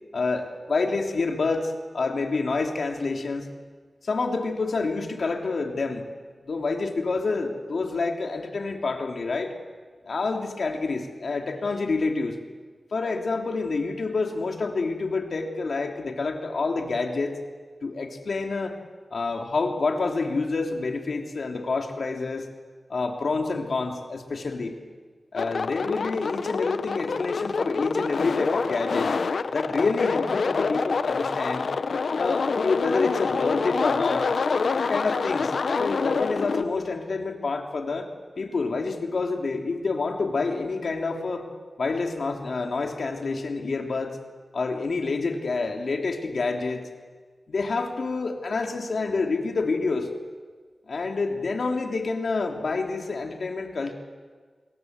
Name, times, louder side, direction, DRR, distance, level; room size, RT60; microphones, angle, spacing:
voice 1, 0.1-3.5 4.0-6.1 6.4-9.5 10.0-12.4 12.9-17.4 17.8-18.8 19.1-22.5 22.9-24.8 25.3-29.1 29.5-31.7 32.1-34.3 34.7-38.1 38.4-41.5 41.8-44.2 44.5-46.8 47.5-50.1 50.9-53.9, left 3 dB, 75° left, 3 dB, 3.1 m, -28 dB
sound 1, 25.4-36.6, left 4 dB, 90° left, 1.0 m, -26 dB
26.5 x 22.0 x 8.1 m, 1.5 s
wide cardioid pair, 110°, 0 cm